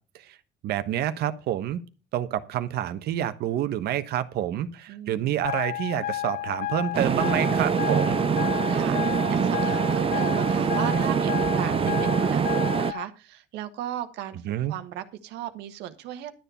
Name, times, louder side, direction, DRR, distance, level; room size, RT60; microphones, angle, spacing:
voice 1, 0.6-1.8 2.1-8.2 11.7-12.1 14.5-14.7, right 11 dB, 70° right, 12 dB, 1.1 m, -28 dB
voice 2, 4.9-5.3 8.0-16.3, right 12 dB, 90° right, 10 dB, 1.4 m, -36 dB
sound 1, 5.4-13.0, left 14 dB, 60° left, 0.7 m, -32 dB
sound 2, 6.9-12.9, right 7 dB, 35° right, 0.5 m, -24 dB
12.0 x 7.0 x 5.5 m, 0.34 s
cardioid pair, 110°, 17 cm